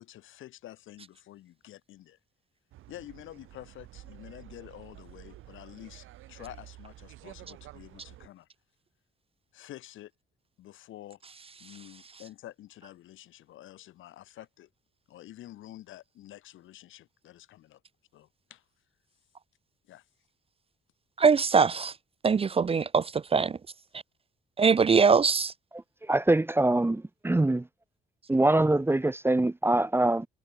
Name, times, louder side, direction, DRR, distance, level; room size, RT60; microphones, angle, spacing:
voice 1, 0.0-2.2 2.9-8.5 9.5-10.1 10.6-11.2 11.6-14.7 15.1-17.8 18.1-18.6 19.9-20.0, left 14 dB, 85° left, 3.3 m, -48 dB
sound 1, 2.7-8.3, right 15 dB, 90° right, 7.1 m, -50 dB
voice 2, 21.2-21.9 22.2-23.6 24.6-25.5, right 5 dB, 30° right, 0.5 m, -22 dB
voice 3, 26.0-27.7 28.3-30.3, right 2 dB, 10° right, 0.9 m, -24 dB
cardioid pair, 90°, 20 cm